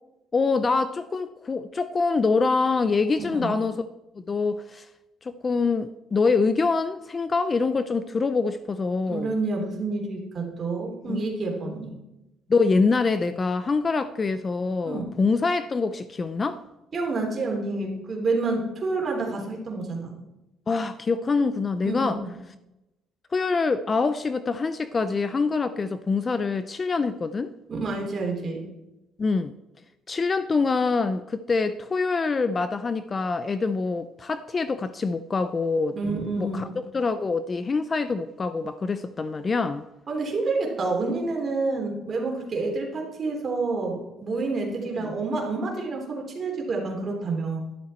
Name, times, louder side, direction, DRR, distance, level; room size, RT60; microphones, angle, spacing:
voice 1, 0.3-3.9 4.3-4.9 5.2-9.3 11.1-11.2 11.7-11.8 12.5-16.6 20.7-22.2 23.3-27.5 29.2-29.5 30.1-36.0 36.4-39.8, left 4 dB, 25° left, 12 dB, 0.5 m, -25 dB
voice 2, 9.1-11.9 14.8-15.1 16.9-20.1 21.8-22.2 27.7-28.6 35.9-36.8 40.1-47.6, right 3 dB, 35° right, 0 dB, 3.4 m, -28 dB
11.5 x 11.5 x 4.4 m, 0.95 s
cardioid pair, 135°, 0 cm